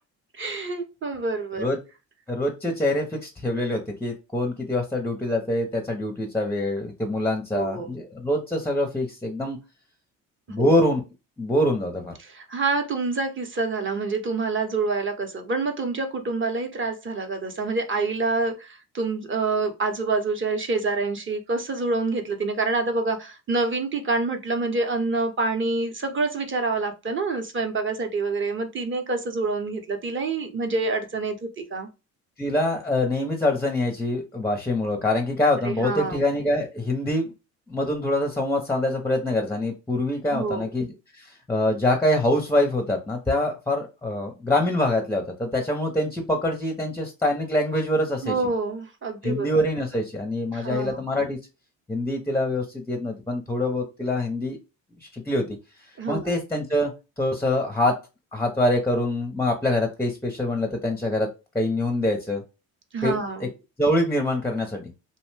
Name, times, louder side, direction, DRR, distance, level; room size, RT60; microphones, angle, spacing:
voice 1, 0.4-1.6 7.5-7.9 10.6-10.7 12.2-31.9 35.6-36.2 40.3-40.7 48.2-49.5 50.5-51.0 56.0-56.3 62.9-63.5, right 3 dB, 30° right, 0.7 m, -27 dB
voice 2, 2.3-9.6 10.5-11.0 11.4-12.1 32.4-37.3 37.7-48.4 49.2-51.4 51.9-54.6 55.0-55.5 56.1-56.9 57.2-58.0 58.3-61.3 61.5-62.4 63.0-63.5 63.8-64.9, left 1 dB, 5° left, 0.5 m, -25 dB
2.6 x 2.1 x 3.2 m
supercardioid pair, 85°, 38 cm